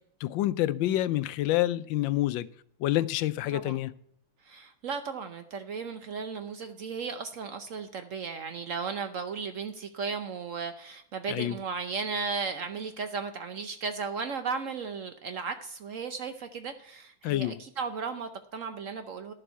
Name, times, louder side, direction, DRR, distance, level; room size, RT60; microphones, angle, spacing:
voice 1, 0.2-2.5 2.8-3.9 11.3-11.5 17.2-17.6, left 15 dB, 75° left, 1.2 m, -27 dB
voice 2, 4.4-19.3, right 5 dB, 70° right, 0.7 m, -35 dB
11.0 x 6.9 x 5.6 m
omnidirectional pair, 2.3 m